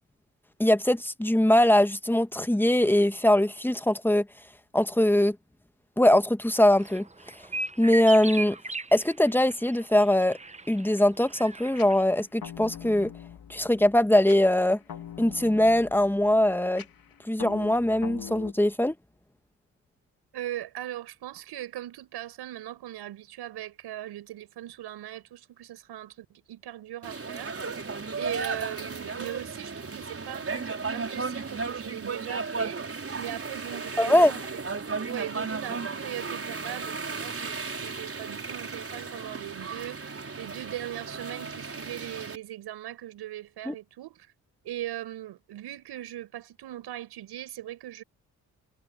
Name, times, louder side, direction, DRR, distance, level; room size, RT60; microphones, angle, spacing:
voice 1, 0.6-4.3 4.7-5.4 6.0-7.0 7.8-8.6 8.9-10.4 10.7-13.1 13.5-14.8 15.2-16.8 17.3-19.0 34.0-34.3 43.7-43.8, left 1 dB, 5° left, 1.9 m, -22 dB
sound 1, 6.8-12.0, right 3 dB, 15° right, 1.2 m, -37 dB
sound 2, 11.8-18.5, left 8 dB, 60° left, 3.4 m, -43 dB
voice 2, 20.3-32.8 33.2-34.6 35.0-44.3 44.6-48.0, right 13 dB, 75° right, 6.4 m, -39 dB
sound 3, 27.0-42.4, right 4 dB, 35° right, 4.8 m, -35 dB
hypercardioid pair, 50°, 40 cm